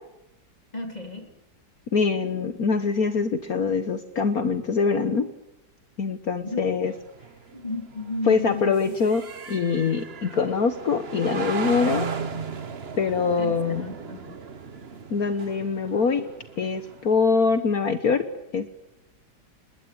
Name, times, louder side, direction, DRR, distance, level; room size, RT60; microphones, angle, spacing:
voice 1, 0.7-1.3 6.4-6.8 7.5-9.0 13.4-14.4, left 3 dB, 20° left, 4 dB, 3.6 m, -34 dB
voice 2, 1.9-5.3 6.0-6.9 8.3-9.2 9.5-12.1 13.0-13.8 15.1-16.3 16.6-18.3 18.5-18.7, left 5 dB, 55° left, 9 dB, 1.7 m, -23 dB
sound 1, 6.9-17.6, right 5 dB, 40° right, 1.4 m, -36 dB
27.0 x 21.0 x 8.7 m, 0.88 s
omnidirectional pair, 1.9 m